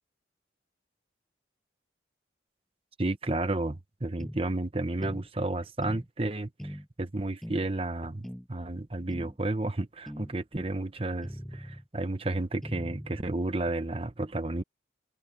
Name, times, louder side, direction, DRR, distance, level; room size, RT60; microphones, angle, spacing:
voice 1, 3.0-14.6, right 2 dB, 30° right, 1.0 m, -32 dB
sound 1, 4.2-4.4 5.0-5.3 5.8-6.1 6.6-6.9 7.4-7.7 8.2-8.5 9.1-9.4 10.1-10.3 11.2-11.9 12.6-13.3, equal, ahead, 7.1 m, -41 dB
head